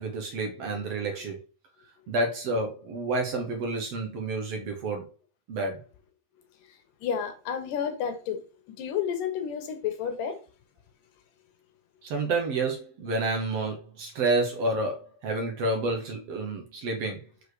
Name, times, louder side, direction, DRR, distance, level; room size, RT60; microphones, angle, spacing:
voice 1, 0.0-1.4 2.1-5.1 5.5-5.8 12.0-17.2, right 2 dB, 60° right, 1.7 m, -29 dB
voice 2, 6.7-8.4 8.7-10.4, left 8 dB, 70° left, 2.5 m, -31 dB
6.5 x 4.6 x 4.8 m
omnidirectional pair, 4.4 m